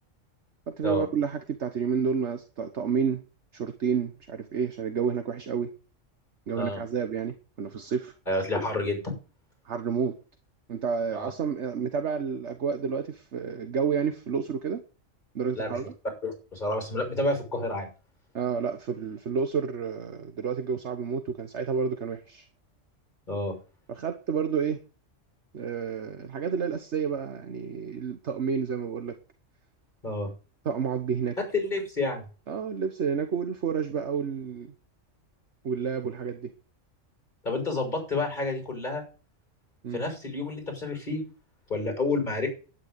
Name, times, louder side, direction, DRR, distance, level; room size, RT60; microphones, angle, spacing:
voice 1, 0.7-3.2 3.5-5.7 6.5-8.1 9.6-10.1 10.7-14.8 15.3-15.9 18.3-22.5 23.9-24.8 25.5-29.1 30.6-31.4 32.5-34.7 35.6-36.5 39.8-40.0, right 6 dB, 60° right, 8 dB, 1.5 m, -30 dB
voice 2, 8.3-9.0 11.1-11.3 15.5-15.8 16.2-17.9 23.3-23.5 30.0-30.3 31.5-32.2 37.4-39.0 39.9-41.2 41.7-42.5, left 2 dB, 35° left, 3 dB, 6.5 m, -29 dB
12.0 x 9.9 x 8.2 m, 0.37 s
omnidirectional pair, 1.3 m